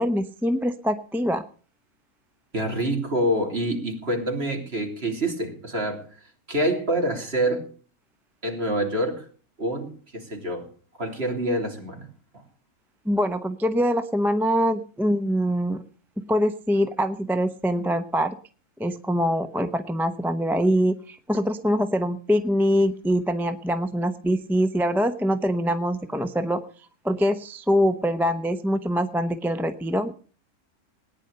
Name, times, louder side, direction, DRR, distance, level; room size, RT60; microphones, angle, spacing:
voice 1, 0.0-1.4 13.0-15.8 16.3-18.4 18.8-26.6 27.0-30.1, equal, ahead, 9 dB, 0.6 m, -24 dB
voice 2, 2.5-7.7 8.4-9.3 9.6-10.7 11.0-12.1 12.3-12.4, right 1 dB, 40° right, 2 dB, 3.5 m, -27 dB
18.0 x 10.0 x 6.7 m, 0.42 s
omnidirectional pair, 1.6 m